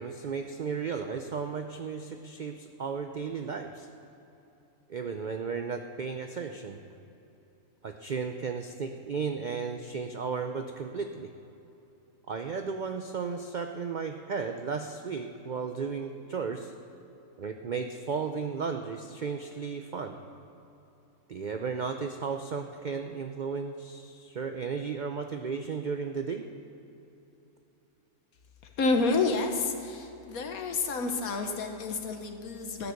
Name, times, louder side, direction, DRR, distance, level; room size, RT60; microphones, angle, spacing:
voice 1, 0.0-3.9 4.9-6.8 7.8-11.3 12.3-16.7 17.4-20.2 21.3-26.5, right 5 dB, 85° right, 5 dB, 0.4 m, -34 dB
voice 2, 28.8-32.9, left 3 dB, 70° left, 4 dB, 1.5 m, -29 dB
13.0 x 9.6 x 6.5 m, 3.0 s
omnidirectional pair, 1.6 m